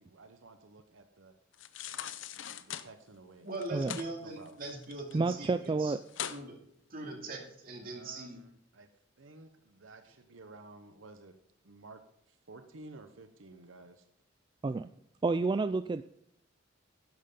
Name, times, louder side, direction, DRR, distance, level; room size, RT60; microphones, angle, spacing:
voice 1, 0.0-1.3 1.8-2.2 2.5-3.5 3.8-3.9 4.2-4.6 7.8-8.9 9.2-11.3 11.6-12.0 12.3-14.0, right 3 dB, 85° right, 8 dB, 1.0 m, -53 dB
sound 1, 1.5-2.9 3.6-4.1 4.5-5.3 5.6-5.7 6.1-6.4 6.9-7.0, left 9 dB, 70° left, 0.7 m, -40 dB
voice 2, 3.4-5.9 6.3-6.6 6.9-8.4, right 2 dB, 50° right, 2 dB, 2.5 m, -41 dB
voice 3, 5.1-6.0 14.6-14.9 15.2-16.0, right 3 dB, 25° right, 11 dB, 0.3 m, -30 dB
11.0 x 11.0 x 3.8 m, 0.70 s
head